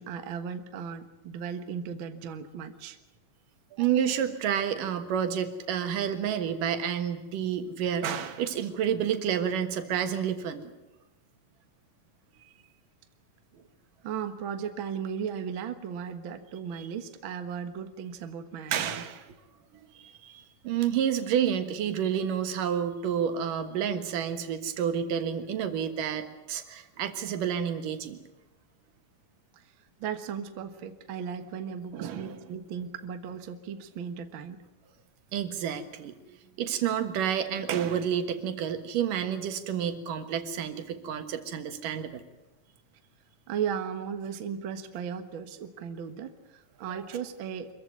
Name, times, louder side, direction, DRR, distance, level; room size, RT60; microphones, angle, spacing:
voice 1, 0.0-3.0 3.7-3.9 13.5-13.7 14.0-19.0 29.5-29.6 30.0-34.6 43.5-47.7, right 7 dB, 50° right, 8 dB, 1.7 m, -36 dB
voice 2, 3.8-10.7 16.8-16.9 18.7-19.3 19.7-28.2 31.9-32.4 35.3-42.2, right 8 dB, 85° right, 8 dB, 3.1 m, -30 dB
24.5 x 15.0 x 9.5 m, 1.0 s
omnidirectional pair, 3.7 m